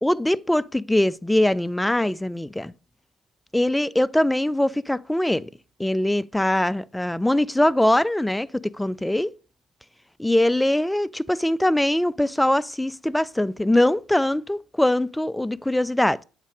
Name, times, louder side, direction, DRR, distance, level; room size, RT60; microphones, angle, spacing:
voice 1, 0.0-2.7 3.5-5.5 5.8-9.3 10.2-16.2, left 1 dB, 10° left, 0.4 m, -22 dB
8.2 x 4.2 x 4.8 m
hypercardioid pair, 55°, 0 cm